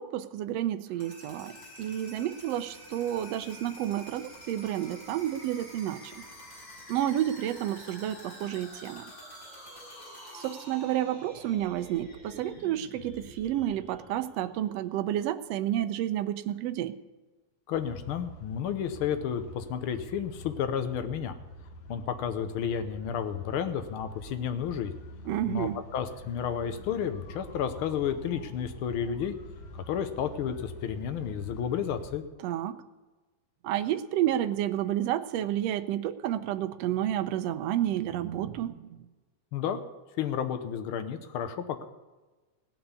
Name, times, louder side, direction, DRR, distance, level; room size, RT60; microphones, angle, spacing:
voice 1, 0.0-6.2 6.9-9.0 10.3-16.9 25.3-25.8 32.4-32.8 33.6-39.0, right 12 dB, 85° right, 10 dB, 1.5 m, -30 dB
sound 1, 0.9-14.7, equal, 30° left, 5.4 m, -48 dB
voice 2, 17.7-21.3 21.9-24.9 25.5-29.3 29.7-32.2 39.5-39.8 40.2-41.8, left 8 dB, 90° left, 8 dB, 1.1 m, -32 dB
sound 2, 17.7-32.2, left 1 dB, 60° left, 2.3 m, -46 dB
17.5 x 6.1 x 9.6 m, 1.2 s
omnidirectional pair, 3.5 m